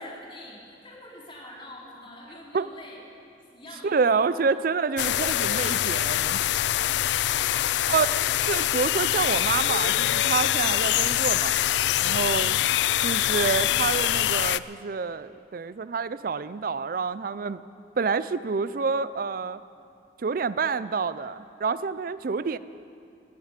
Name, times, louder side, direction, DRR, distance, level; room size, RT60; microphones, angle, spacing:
voice 1, 0.0-3.0 3.5-4.5, left 1 dB, 30° left, -5 dB, 3.6 m, -46 dB
voice 2, 3.8-6.4 7.9-8.1 8.5-11.6 12.0-12.6 13.0-17.6 18.0-19.6 20.2-22.6, right 5 dB, 55° right, 15 dB, 0.4 m, -27 dB
sound 1, 5.0-14.6, left 13 dB, 75° left, 0.3 m, -24 dB
17.0 x 8.4 x 8.9 m, 2.5 s
head